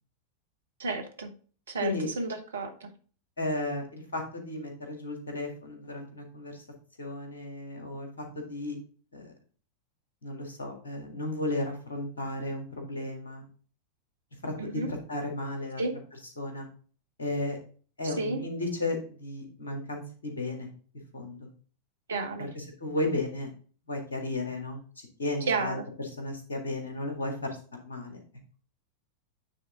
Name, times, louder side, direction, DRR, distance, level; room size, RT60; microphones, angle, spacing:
voice 1, 0.8-1.3 1.7-2.9 14.6-14.9 15.8-15.9 18.2-18.4 22.1-22.5 25.5-25.9, right 3 dB, 70° right, 5 dB, 1.1 m, -31 dB
voice 2, 3.4-6.6 7.0-8.8 9.1-9.3 10.2-13.5 14.4-15.9 16.4-16.7 17.2-17.6 18.0-20.7 21.1-21.5 22.4-23.5 23.9-24.8 25.2-27.6 27.8-28.2, left 2 dB, 70° left, 3 dB, 1.8 m, -34 dB
9.1 x 3.7 x 3.7 m, 0.41 s
figure-of-eight pair, 90°, 0 cm